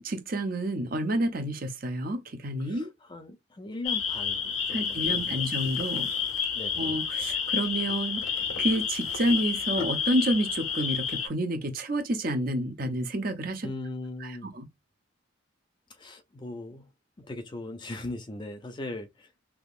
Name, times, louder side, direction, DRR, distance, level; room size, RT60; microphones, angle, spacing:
voice 1, 0.0-2.9 4.7-6.1 6.8-8.2 8.6-13.7 14.2-14.7, right 1 dB, 45° right, 0.7 m, -29 dB
voice 2, 2.6-5.6 6.5-6.9 13.6-14.5 15.9-16.9 17.2-19.3, left 2 dB, 20° left, 0.4 m, -39 dB
sound 1, 3.8-11.3, left 7 dB, 85° left, 1.0 m, -30 dB
3.5 x 2.9 x 2.4 m
head